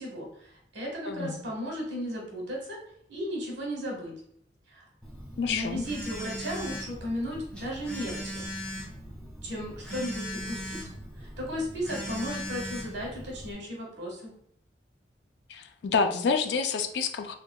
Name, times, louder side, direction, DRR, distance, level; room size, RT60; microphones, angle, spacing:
voice 1, 0.0-2.8 3.1-4.1 4.7-4.8 5.5-8.4 9.4-10.8 11.2-14.3, equal, 90° right, -1 dB, 1.4 m, -35 dB
voice 2, 1.1-1.4 5.4-5.8 15.5-17.4, left 5 dB, 70° left, 7 dB, 0.4 m, -28 dB
Telephone, 5.0-13.5, equal, 5° left, 1.0 m, -39 dB
3.6 x 3.2 x 2.2 m, 0.68 s
head